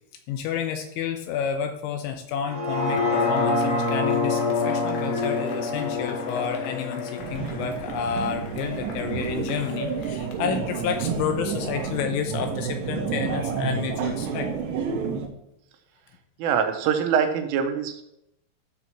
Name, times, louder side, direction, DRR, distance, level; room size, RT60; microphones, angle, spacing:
voice 1, 0.3-14.5 16.4-16.7, left 7 dB, 80° left, 6 dB, 2.9 m, -30 dB
sound 1, 2.4-8.6 9.0-9.1, left 3 dB, 30° left, 1.8 m, -26 dB
Cheering / Applause / Crowd, 2.7-11.3, left 4 dB, 65° left, 2.7 m, -42 dB
sound 2, 7.2-15.3, right 6 dB, 70° right, 3.2 m, -30 dB
voice 2, 16.4-18.0, right 7 dB, 90° right, 6 dB, 3.5 m, -24 dB
13.5 x 7.1 x 3.0 m, 0.80 s
omnidirectional pair, 5.6 m